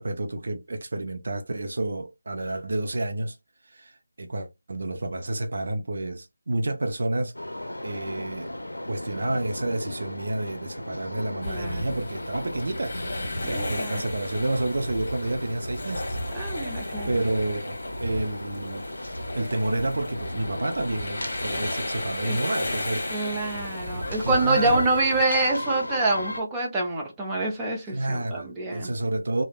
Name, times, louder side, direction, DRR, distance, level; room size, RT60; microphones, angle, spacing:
voice 1, 0.0-3.4 3.6-7.3 7.8-8.5 8.9-13.0 13.4-16.2 17.1-18.8 19.3-23.1 24.2-24.8 27.9-29.4, right 2 dB, 50° right, 0.5 m, -30 dB
sound 1, 7.3-26.4, left 1 dB, 80° left, 0.5 m, -36 dB
sound 2, 11.4-25.2, left 1 dB, 40° left, 1.2 m, -34 dB
voice 2, 11.5-11.9 13.4-14.0 16.3-17.2 22.2-22.4 23.1-28.9, right 2 dB, 10° right, 0.6 m, -26 dB
3.1 x 2.1 x 2.3 m
figure-of-eight pair, 160°, 0 cm